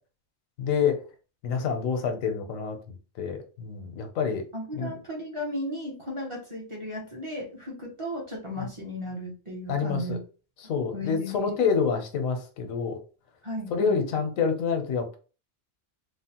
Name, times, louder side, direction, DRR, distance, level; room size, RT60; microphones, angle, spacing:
voice 1, 0.6-1.0 1.4-4.5 4.7-4.9 8.6-8.7 9.7-10.2 10.6-13.0 13.7-15.2, left 6 dB, 85° left, 6 dB, 1.1 m, -27 dB
voice 2, 4.5-10.2 10.9-11.5 13.4-14.0, left 1 dB, 30° right, -2 dB, 0.6 m, -35 dB
3.1 x 2.1 x 2.8 m, 0.35 s
omnidirectional pair, 1.4 m